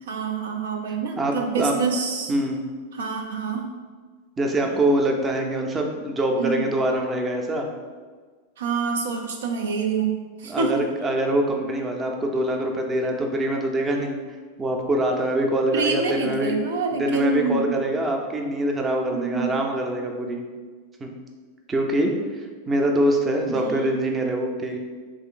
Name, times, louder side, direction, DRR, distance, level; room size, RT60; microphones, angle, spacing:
voice 1, 0.0-2.3 2.9-3.8 4.6-4.8 6.4-6.6 8.6-10.9 15.7-17.8 19.1-19.5 20.3-20.4 23.4-23.9, right 5 dB, 75° right, 3 dB, 0.4 m, -27 dB
voice 2, 1.2-1.7 2.3-2.6 4.4-7.7 10.4-14.2 14.6-16.6 17.0-20.4 21.0-21.1 21.7-24.8, right 1 dB, 20° right, 2 dB, 0.5 m, -24 dB
3.1 x 2.5 x 3.7 m, 1.4 s
hypercardioid pair, 100°, 0 cm